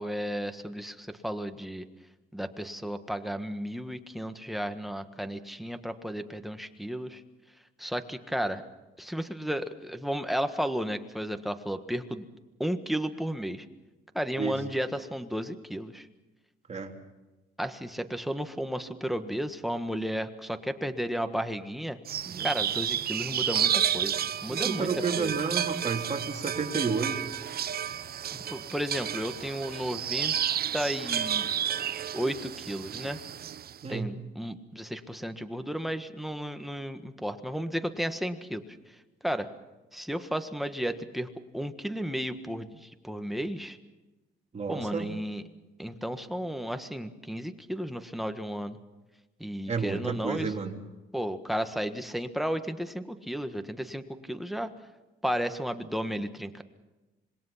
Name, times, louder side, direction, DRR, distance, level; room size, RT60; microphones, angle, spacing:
voice 1, 0.0-1.8 2.3-7.2 7.8-8.6 9.0-12.3 12.6-13.6 14.1-16.1 17.6-22.0 22.4-25.3 28.3-30.3 30.7-31.5 32.1-33.2 33.9-38.6 39.2-39.5 39.9-43.8 44.7-45.4 45.8-48.8 49.4-50.5 51.1-54.7 55.2-56.6, equal, ahead, 7 dB, 1.6 m, -33 dB
sound 1, 22.1-33.8, right 9 dB, 50° right, 0.7 m, -31 dB
voice 2, 24.5-27.2 33.8-34.1 44.5-45.0 49.7-50.7, right 5 dB, 35° right, 1 dB, 3.4 m, -31 dB
26.5 x 21.0 x 5.8 m, 1.1 s
cardioid pair, 90°, 20 cm